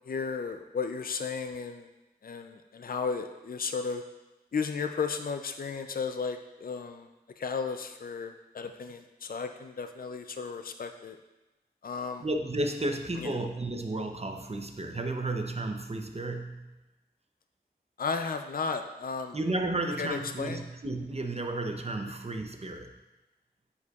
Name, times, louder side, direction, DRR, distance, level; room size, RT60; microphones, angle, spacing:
voice 1, 0.1-1.9 2.2-4.0 4.5-7.1 7.4-11.2 11.8-12.2 13.2-13.4 18.0-19.4 20.0-20.7, left 5 dB, 60° left, 7 dB, 0.4 m, -34 dB
voice 2, 12.2-16.8 19.3-22.9, right 2 dB, 35° right, 4 dB, 0.7 m, -33 dB
9.5 x 4.7 x 2.4 m, 1.1 s
wide cardioid pair, 40°, 17 cm